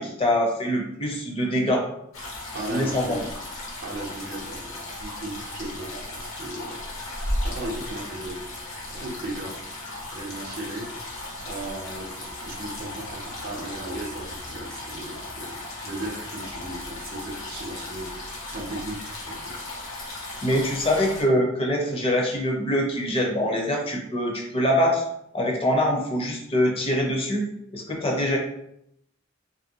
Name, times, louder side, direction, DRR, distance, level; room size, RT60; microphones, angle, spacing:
voice 1, 0.0-1.8 2.7-3.2 20.4-25.0 25.3-27.4 27.7-28.4, equal, 30° left, -1 dB, 0.6 m, -24 dB
sound 1, 2.1-21.2, left 1 dB, 75° left, 1.0 m, -36 dB
voice 2, 2.5-3.4 3.8-7.0 7.4-8.5 8.9-9.6 10.1-11.0 11.5-19.6, right 1 dB, 50° right, 0 dB, 0.6 m, -36 dB
2.8 x 2.7 x 2.8 m, 0.76 s
head